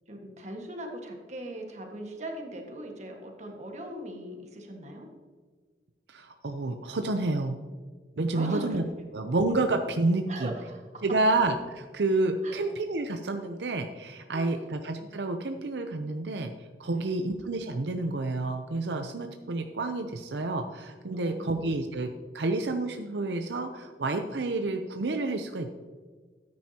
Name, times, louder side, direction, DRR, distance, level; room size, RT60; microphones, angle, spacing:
voice 1, 0.1-5.1 8.3-8.8 10.3-11.0 12.4-12.8 14.3-14.7 16.9-17.3 21.1-21.8, right 1 dB, 40° right, 2 dB, 1.6 m, -40 dB
voice 2, 6.1-7.6 8.2-8.8 9.1-10.5 11.0-16.5 16.8-25.7, right 2 dB, 75° right, 6 dB, 0.6 m, -29 dB
13.5 x 9.5 x 2.9 m, 1.5 s
head